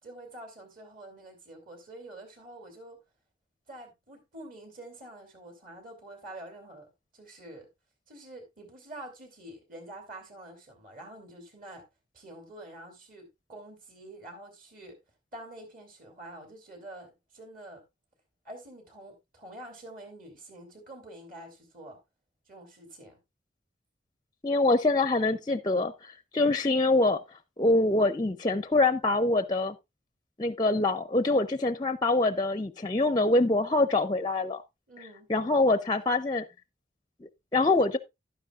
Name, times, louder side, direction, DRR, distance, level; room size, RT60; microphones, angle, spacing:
voice 1, 0.0-3.0 3.7-6.9 7.1-7.7 8.1-11.8 12.1-15.0 15.3-17.8 18.4-22.0 22.5-23.2 34.9-35.3, right 1 dB, 45° right, 3.0 m, -47 dB
voice 2, 24.4-27.2 27.6-29.8 30.4-34.6 35.3-36.4 37.2-38.0, left 2 dB, 20° left, 0.5 m, -25 dB
11.5 x 9.8 x 2.4 m
head